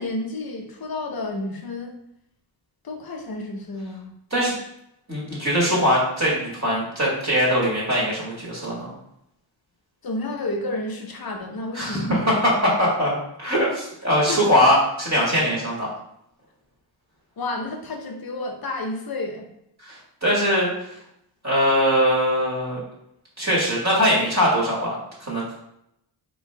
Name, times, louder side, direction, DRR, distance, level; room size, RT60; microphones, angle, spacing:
voice 1, 0.0-2.0 2.8-4.1 10.0-12.3 12.6-12.9 14.3-14.4 17.4-19.5, left 2 dB, 45° left, 3 dB, 0.9 m, -31 dB
voice 2, 5.1-8.9 11.7-15.9 19.8-20.7 21.4-22.8 23.4-25.5, equal, 35° right, -6 dB, 1.6 m, -21 dB
4.7 x 3.1 x 3.3 m, 0.79 s
wide cardioid pair, 95°, 49 cm